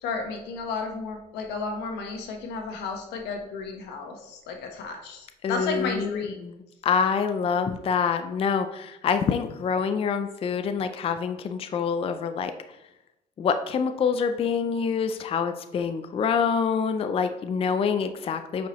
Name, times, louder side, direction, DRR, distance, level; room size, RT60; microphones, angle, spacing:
voice 1, 0.0-6.4, left 4 dB, 85° left, 4 dB, 1.2 m, -33 dB
voice 2, 5.4-12.5 13.4-18.7, left 6 dB, 35° left, 8 dB, 0.4 m, -26 dB
8.2 x 4.7 x 3.0 m, 0.92 s
cardioid pair, 110°, 17 cm